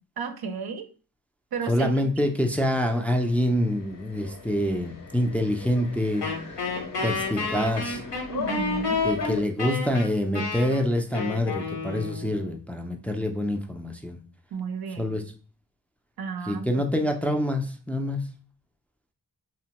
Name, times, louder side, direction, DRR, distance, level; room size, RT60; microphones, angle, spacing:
voice 1, 0.2-0.9 1.5-1.9 2.2-2.3 8.3-9.1 14.5-15.1 16.2-16.8, right 5 dB, 65° right, 9 dB, 0.5 m, -33 dB
voice 2, 1.7-6.2 7.0-8.0 9.0-14.2 15.0-15.2 16.5-18.2, left 1 dB, 5° left, 4 dB, 0.4 m, -26 dB
sound 1, 2.1-9.4, left 5 dB, 55° left, 0.6 m, -40 dB
Wind instrument woodwind instrument, 6.2-12.5, left 4 dB, 80° left, 1.0 m, -30 dB
2.7 x 2.1 x 2.9 m, 0.38 s
cardioid pair, 45°, 41 cm